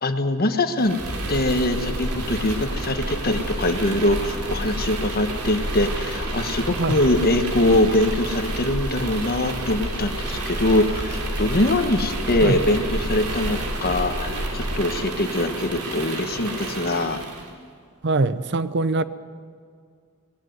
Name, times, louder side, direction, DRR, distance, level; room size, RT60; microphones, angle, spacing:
voice 1, 0.0-1.0 1.3-17.2, left 1 dB, 45° left, 8 dB, 1.3 m, -23 dB
sound 1, 0.8-17.5, right 1 dB, 85° right, 3.1 m, -29 dB
voice 2, 18.0-19.0, right 3 dB, 50° right, 14 dB, 0.7 m, -22 dB
19.5 x 17.5 x 7.9 m, 2.1 s
head